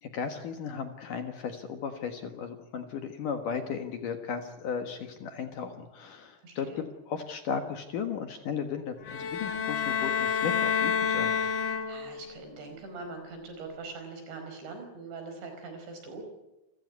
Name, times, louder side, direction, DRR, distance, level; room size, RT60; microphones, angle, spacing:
voice 1, 0.0-11.3, left 6 dB, 60° left, 6 dB, 2.6 m, -35 dB
voice 2, 6.4-6.8 11.9-16.2, right 3 dB, 75° right, 5 dB, 7.0 m, -42 dB
sound 1, 9.0-12.3, left 7 dB, 75° left, 4.4 m, -29 dB
28.5 x 15.0 x 9.5 m, 0.94 s
omnidirectional pair, 5.1 m